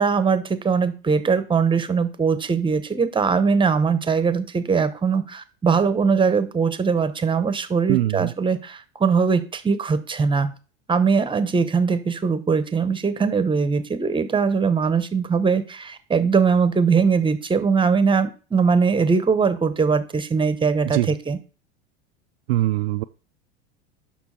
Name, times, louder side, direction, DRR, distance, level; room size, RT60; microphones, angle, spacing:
voice 1, 0.0-10.5 10.9-21.4, right 5 dB, 15° right, 12 dB, 0.9 m, -21 dB
voice 2, 7.9-8.3 20.8-21.1 22.5-23.0, right 16 dB, 75° right, 8 dB, 0.5 m, -22 dB
6.9 x 5.9 x 4.3 m, 0.35 s
hypercardioid pair, 95°, 31 cm